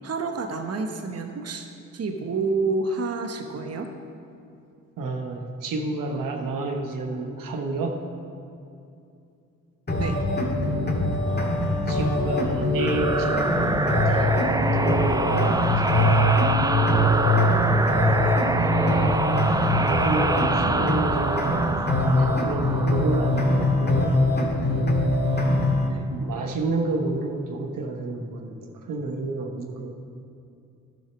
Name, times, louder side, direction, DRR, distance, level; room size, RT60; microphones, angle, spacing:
voice 1, 0.0-1.7 1.9-3.9 10.0-10.2 18.0-18.4 25.8-26.1, right 3 dB, 45° right, 5 dB, 1.0 m, -29 dB
voice 2, 5.0-8.0 11.2-14.3 14.7-16.2 18.5-19.4 19.7-24.1 26.1-29.9, right 3 dB, 70° right, 3 dB, 1.1 m, -30 dB
sound 1, 9.9-25.9, left 1 dB, 30° left, 1.8 m, -23 dB
sound 2, 12.8-24.1, right 2 dB, 10° right, 0.4 m, -26 dB
10.0 x 6.3 x 6.0 m, 2.6 s
supercardioid pair, 50°, 33 cm